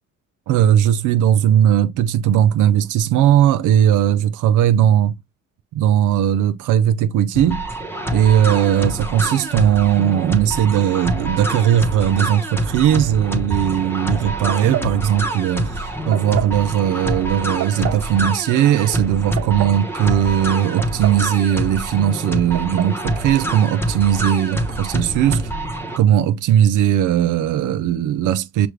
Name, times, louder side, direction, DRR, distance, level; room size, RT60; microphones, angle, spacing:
voice 1, 0.5-5.1 5.7-7.6 8.1-25.5 26.0-28.7, right 10 dB, 80° right, 0.6 m, -18 dB
sound 1, 7.3-26.0, right 1 dB, 10° left, 1.0 m, -26 dB
sound 2, 13.0-15.2, right 4 dB, 10° right, 0.6 m, -36 dB
sound 3, 14.5-15.0 16.1-16.6 17.6-18.1 19.1-19.8 20.8-21.3 21.6-21.7 22.5-23.0, right 11 dB, 65° right, 1.2 m, -28 dB
6.2 x 2.4 x 3.3 m
cardioid pair, 90°, 30 cm